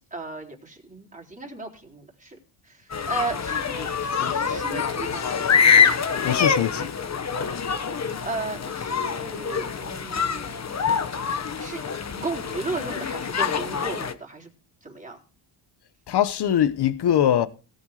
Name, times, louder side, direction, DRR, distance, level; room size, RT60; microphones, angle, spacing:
voice 1, 0.1-2.4 3.1-5.3 8.2-10.6 11.6-11.8 12.2-14.5 14.8-15.2, right 3 dB, 15° right, 3.8 m, -35 dB
sound 1, 2.9-14.1, left 6 dB, 35° left, 1.2 m, -25 dB
voice 2, 6.2-6.9 16.1-17.5, left 10 dB, 55° left, 1.1 m, -22 dB
17.5 x 7.1 x 4.9 m
cardioid pair, 130°, 48 cm